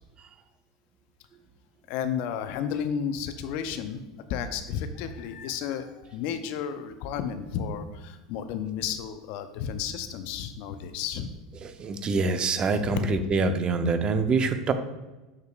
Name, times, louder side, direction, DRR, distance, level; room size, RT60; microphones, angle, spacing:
voice 1, 1.9-4.0 4.3-11.3 12.8-13.0, left 8 dB, 60° left, 9 dB, 0.6 m, -32 dB
voice 2, 11.6-14.7, right 3 dB, 35° right, 8 dB, 0.7 m, -25 dB
6.7 x 6.5 x 2.5 m, 1.1 s
hypercardioid pair, 85°, 3 cm